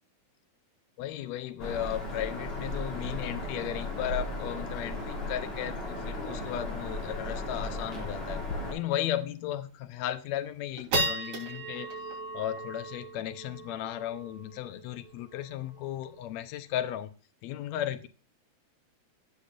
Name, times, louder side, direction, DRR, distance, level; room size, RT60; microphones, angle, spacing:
voice 1, 1.0-8.4 8.7-17.1 17.4-18.1, left 12 dB, 75° left, 10 dB, 1.8 m, -35 dB
Bird vocalization bird call bird song, 1.6-8.7, left 2 dB, 45° left, 4.2 m, -35 dB
sound 1, 8.3-8.5 9.0-9.1 9.6-10.0 10.4-17.0, right 2 dB, 90° right, 5.2 m, -37 dB
16.5 x 6.8 x 2.5 m, 0.36 s
omnidirectional pair, 3.8 m